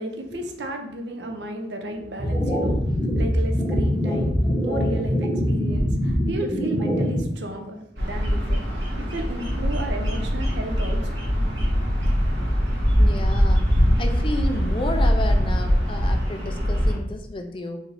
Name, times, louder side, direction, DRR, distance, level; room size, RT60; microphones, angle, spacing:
voice 1, 0.0-4.4 4.6-11.2, right 1 dB, 70° right, 4 dB, 0.7 m, -33 dB
sound 1, 2.2-7.2, equal, 10° right, 1.0 m, -23 dB
Bird vocalization bird call bird song, 8.0-17.0, equal, 90° right, 1.6 m, -22 dB
voice 2, 13.0-13.7 14.0-17.8, left 1 dB, 30° left, 5 dB, 0.5 m, -31 dB
4.6 x 2.7 x 3.4 m, 0.80 s
head